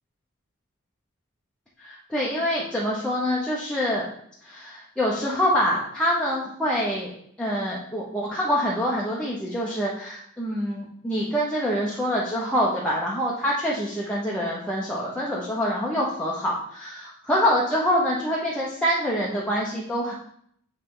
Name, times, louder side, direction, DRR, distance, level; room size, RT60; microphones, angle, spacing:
voice 1, 1.8-4.1 4.4-7.1 7.4-20.1, equal, 5° left, -6 dB, 0.8 m, -25 dB
9.3 x 3.3 x 3.8 m, 0.68 s
head